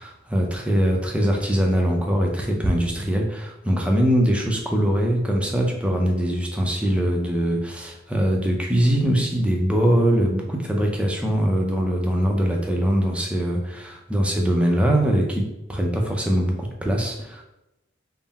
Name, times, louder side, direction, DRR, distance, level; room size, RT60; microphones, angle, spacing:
voice 1, 0.0-17.4, equal, 5° right, 1 dB, 0.5 m, -22 dB
3.8 x 2.1 x 4.0 m, 0.92 s
head